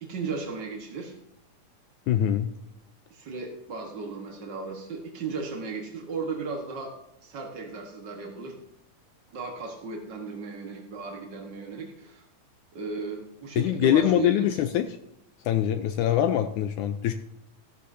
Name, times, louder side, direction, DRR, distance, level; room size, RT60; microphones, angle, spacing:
voice 1, 0.0-1.1 3.1-6.9 7.2-8.6 9.3-12.2 12.7-14.6, right 4 dB, 65° right, 1 dB, 1.1 m, -35 dB
voice 2, 2.1-2.5 13.6-14.9 15.5-17.1, left 11 dB, 85° left, 9 dB, 1.8 m, -23 dB
14.0 x 12.0 x 2.7 m, 0.80 s
omnidirectional pair, 4.1 m